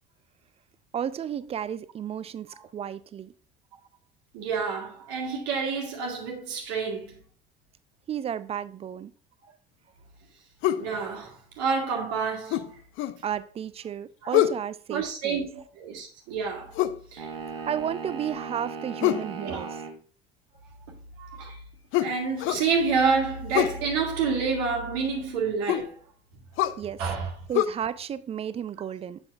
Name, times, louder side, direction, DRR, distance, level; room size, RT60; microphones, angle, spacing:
voice 1, 0.9-3.3 8.1-9.1 13.2-15.5 17.7-19.8 26.8-27.0 27.5-29.2, right 9 dB, 20° right, 0.4 m, -33 dB
voice 2, 4.3-7.2 10.8-12.7 14.2-14.4 14.9-16.7 17.1-17.3 17.6-17.7 19.4-19.8 20.9-21.6 22.0-26.0 27.0-27.3, right 5 dB, 60° right, 1.6 m, -29 dB
sound 1, 10.6-10.9 12.5-13.2 14.3-14.6 16.7-17.0 19.0-19.3 21.9-22.7 23.5-23.8 25.7-25.9 26.6-26.8 27.5-27.7, left 13 dB, 45° left, 0.5 m, -25 dB
sound 2, 17.2-20.0, right 5 dB, 80° right, 0.9 m, -37 dB
7.6 x 6.0 x 2.4 m
figure-of-eight pair, 60°, 29 cm